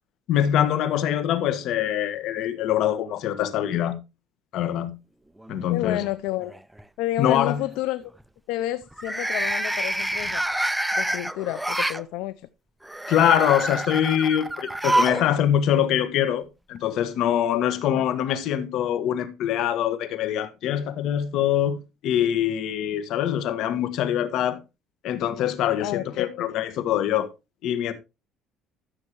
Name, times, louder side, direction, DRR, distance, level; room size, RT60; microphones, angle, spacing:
voice 1, 0.3-4.0 4.5-4.9 5.5-6.0 7.2-7.6 13.1-21.8 22.0-24.6 25.0-27.3 27.6-27.9, left 10 dB, 65° left, 1.6 m, -24 dB
sound 1, 5.4-6.0 6.4-6.8 8.9-12.0 12.8-15.3 15.5-15.6 16.8-16.9, right 1 dB, 5° right, 0.5 m, -27 dB
voice 2, 5.7-6.6 7.0-8.1 8.5-10.4 11.0-12.5 17.9-18.1 25.8-26.5, left 15 dB, 80° left, 0.6 m, -30 dB
14.0 x 6.6 x 3.0 m
cardioid pair, 110°, 0 cm